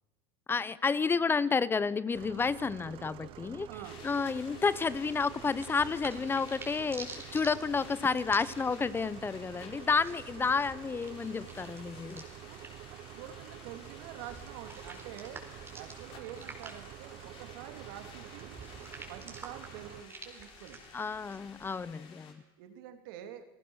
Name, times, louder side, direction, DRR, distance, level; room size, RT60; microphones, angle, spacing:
voice 1, 0.5-3.7 4.0-12.2 20.9-22.4, left 5 dB, 20° left, 18 dB, 0.8 m, -30 dB
sound 1, 2.1-20.0, right 15 dB, 50° right, 0.8 m, -48 dB
voice 2, 3.7-4.0 12.4-12.6 13.1-15.4 15.7-18.6 19.1-20.8 22.6-23.4, right 10 dB, 75° right, 7 dB, 3.0 m, -47 dB
sound 2, 3.8-22.3, left 6 dB, 50° left, 5.1 m, -54 dB
sound 3, 4.7-21.9, right 3 dB, 20° right, 4.5 m, -51 dB
29.0 x 18.0 x 6.4 m, 1.1 s
supercardioid pair, 110°, 11 cm